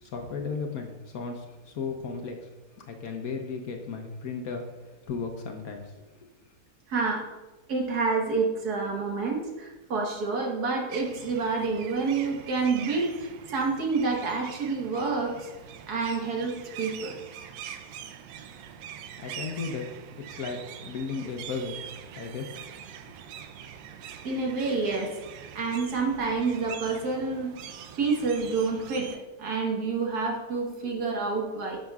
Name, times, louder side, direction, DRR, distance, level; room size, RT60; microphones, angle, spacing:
voice 1, 0.0-2.5 2.8-4.7 5.1-5.9 19.2-21.8 22.1-22.5, left 5 dB, 65° left, 3 dB, 1.1 m, -35 dB
voice 2, 6.9-7.2 7.7-15.5 15.9-17.2 24.2-25.2 25.6-27.5 28.0-31.8, right 4 dB, 60° right, 0 dB, 1.8 m, -28 dB
sound 1, 10.9-29.2, right 9 dB, 85° right, 1.3 m, -43 dB
10.5 x 7.3 x 2.3 m, 1.1 s
omnidirectional pair, 1.9 m